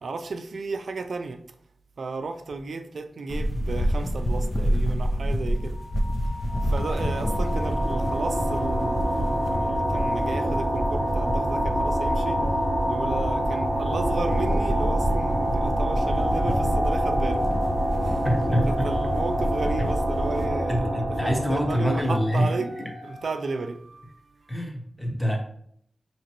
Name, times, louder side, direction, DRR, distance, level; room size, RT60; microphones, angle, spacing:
voice 1, 0.0-1.4 2.0-5.8 6.6-12.5 12.9-17.5 18.0-24.2 24.4-24.5, right 3 dB, 75° right, 0.4 m, -33 dB
sound 1, 3.3-20.5, equal, 30° left, 0.5 m, -29 dB
sound 2, 5.6-23.5, left 1 dB, 50° left, 1.3 m, -32 dB
sound 3, 6.5-22.4, right 1 dB, 55° right, 0.8 m, -28 dB
voice 2, 18.2-18.9 20.7-22.5 22.8-22.9 24.5-25.4, equal, 10° left, 0.9 m, -25 dB
4.9 x 3.0 x 2.9 m
wide cardioid pair, 75°, 0 cm